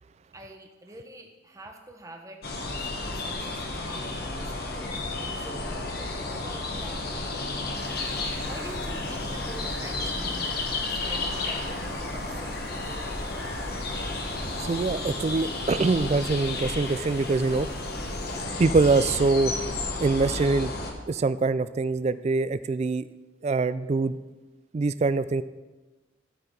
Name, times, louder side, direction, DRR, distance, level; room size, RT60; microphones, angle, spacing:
voice 1, 0.3-2.4 2.7-4.7 5.0-7.3 8.4-13.2, right 1 dB, 15° right, 3 dB, 1.0 m, -46 dB
sound 1, 2.4-20.9, left 2 dB, 55° left, 1.2 m, -32 dB
sound 2, 7.7-18.4, equal, 5° left, 0.8 m, -45 dB
voice 2, 14.6-17.7 18.6-19.5 20.0-20.7 21.1-23.0 23.4-24.2 24.7-25.4, right 3 dB, 35° right, 14 dB, 0.3 m, -24 dB
13.5 x 4.8 x 5.2 m, 1.2 s
head